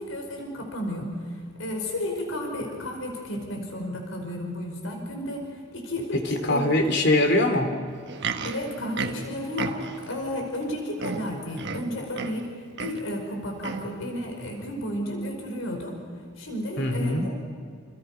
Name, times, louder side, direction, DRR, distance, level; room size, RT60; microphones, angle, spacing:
voice 1, 0.0-6.7 8.4-16.0 16.4-17.3, left 1 dB, 80° left, 2 dB, 5.1 m, -32 dB
voice 2, 6.1-7.7 16.8-17.3, left 1 dB, 60° left, 7 dB, 2.9 m, -22 dB
Livestock farm animals working animals, 7.9-10.1 10.7-10.8 11.0-12.5 12.8-13.1 13.6-14.0 14.6-14.7, right 4 dB, 60° right, 1.3 m, -33 dB
29.5 x 28.5 x 5.7 m, 2.1 s
head